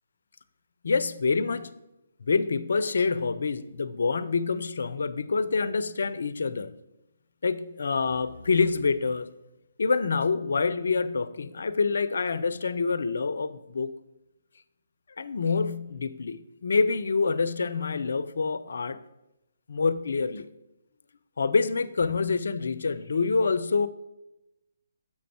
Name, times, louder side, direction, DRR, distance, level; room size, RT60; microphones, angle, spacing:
voice 1, 0.8-1.7 2.2-6.7 7.4-9.3 9.8-13.9 15.2-19.0 19.7-20.5 21.4-23.9, left 4 dB, 65° left, 0.4 m, -26 dB
7.2 x 5.1 x 4.5 m
figure-of-eight pair, 140°, 0 cm